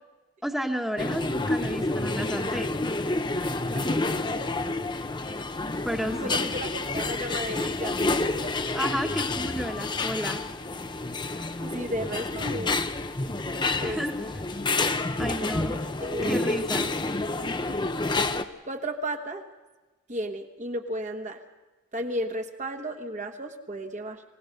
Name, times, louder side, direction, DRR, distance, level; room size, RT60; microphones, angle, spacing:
voice 1, 0.4-2.7 5.8-6.5 8.7-10.4 13.6-14.2 15.2-15.7 16.3-16.9, equal, ahead, 3 dB, 1.3 m, -32 dB
sound 1, 1.0-18.4, left 2 dB, 20° left, 0.7 m, -29 dB
voice 2, 3.7-4.5 6.2-8.0 11.6-12.7 13.8-14.0 16.0-16.4 17.8-17.9 18.7-19.4 20.1-21.4 21.9-24.2, right 1 dB, 35° right, 4 dB, 1.2 m, -34 dB
26.0 x 17.0 x 6.6 m, 1.3 s
head